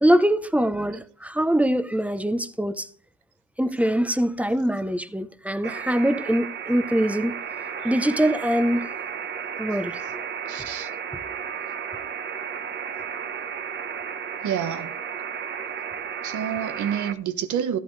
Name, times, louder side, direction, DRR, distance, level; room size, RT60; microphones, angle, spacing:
voice 1, 0.0-2.9 3.6-7.4 7.7-8.9 9.6-10.0, right 1 dB, 5° right, 0.8 m, -23 dB
sound 1, 5.6-17.1, right 7 dB, 35° right, 1.1 m, -33 dB
voice 2, 10.5-10.9 14.4-15.0 16.2-17.8, right 9 dB, 75° right, 1.3 m, -28 dB
13.5 x 11.5 x 3.3 m
cardioid pair, 90°, 30 cm